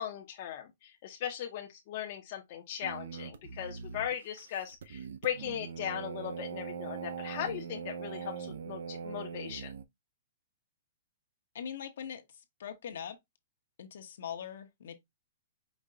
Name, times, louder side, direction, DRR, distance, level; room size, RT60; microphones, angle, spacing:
voice 1, 0.0-9.7, left 10 dB, 40° left, 0.7 m, -38 dB
sound 1, 2.8-9.8, right 6 dB, 75° right, 0.5 m, -41 dB
voice 2, 11.5-12.2 12.6-13.2 13.8-14.9, left 8 dB, 65° left, 0.9 m, -41 dB
5.2 x 2.2 x 3.8 m
hypercardioid pair, 165°, 0 cm